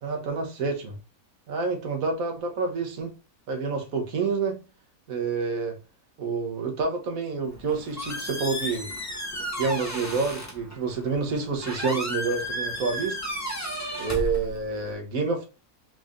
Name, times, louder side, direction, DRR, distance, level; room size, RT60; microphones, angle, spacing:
voice 1, 0.0-1.0 1.5-3.1 3.5-4.6 5.1-5.8 6.2-8.9 9.6-13.2 14.0-15.5, right 4 dB, 70° right, 1.4 m, -28 dB
Squeak, 7.4-14.9, equal, 20° left, 0.5 m, -34 dB
3.9 x 2.5 x 3.5 m
omnidirectional pair, 1.6 m